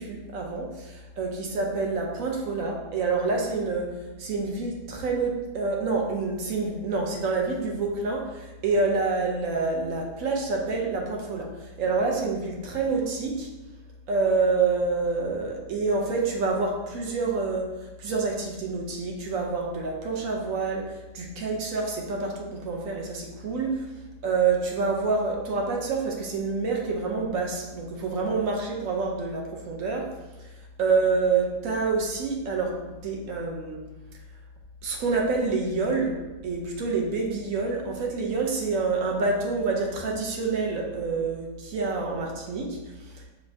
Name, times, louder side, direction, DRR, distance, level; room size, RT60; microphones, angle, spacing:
voice 1, 0.0-13.5 14.1-17.7 18.0-23.8 24.2-30.1 30.4-30.5 30.8-33.8 34.8-36.2 36.4-43.2, right 4 dB, 75° right, 0 dB, 1.2 m, -27 dB
5.1 x 2.7 x 3.4 m, 1.1 s
omnidirectional pair, 1.4 m